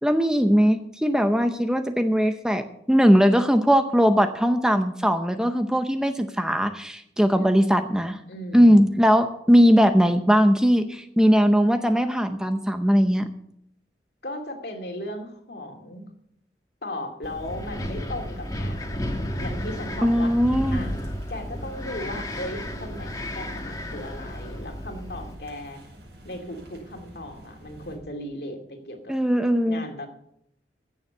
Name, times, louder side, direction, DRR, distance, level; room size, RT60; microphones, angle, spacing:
voice 1, 0.0-8.2 8.5-13.3 20.0-20.8 29.1-29.8, equal, 5° right, 8 dB, 0.6 m, -20 dB
voice 2, 7.4-7.8 8.3-8.8 14.2-16.0 16.8-19.0 19.4-20.9 21.3-25.8 26.2-29.1 29.6-30.1, left 1 dB, 65° left, 4 dB, 2.4 m, -36 dB
Wind, 17.2-25.3, equal, 20° left, 1.4 m, -32 dB
sound 1, 19.4-28.0, equal, 75° right, 5.7 m, -48 dB
15.0 x 7.2 x 6.7 m, 0.73 s
head